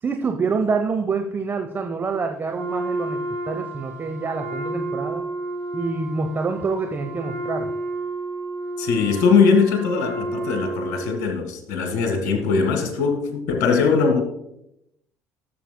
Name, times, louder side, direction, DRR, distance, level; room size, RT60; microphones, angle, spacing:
voice 1, 0.0-3.2 3.5-5.3 5.7-7.7, right 4 dB, 30° right, 0.8 m, -26 dB
Wind instrument woodwind instrument, 2.5-11.4, right 2 dB, 80° right, 1.7 m, -31 dB
voice 2, 8.8-14.2, left 5 dB, 55° left, 1.9 m, -20 dB
15.5 x 7.6 x 2.2 m
figure-of-eight pair, 55°, 7 cm